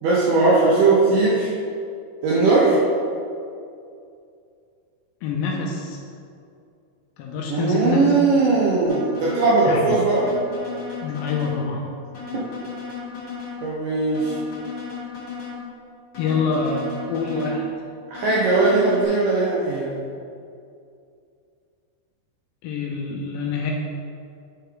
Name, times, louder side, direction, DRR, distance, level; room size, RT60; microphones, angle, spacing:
voice 1, 0.0-1.6 2.2-2.8 7.5-10.3 12.3-12.5 13.6-14.4 18.1-20.0, right 3 dB, 75° right, -6 dB, 2.0 m, -19 dB
voice 2, 5.2-6.0 7.2-8.2 9.6-10.0 11.0-11.9 16.2-17.6 22.6-23.7, left 4 dB, 85° left, -1 dB, 2.1 m, -26 dB
sound 1, 8.9-9.6 10.1-11.6 12.1-13.6 14.1-15.6 16.1-17.6 18.1-19.0, left 5 dB, 40° left, 1.9 m, -35 dB
8.7 x 4.9 x 4.6 m, 2.4 s
omnidirectional pair, 5.0 m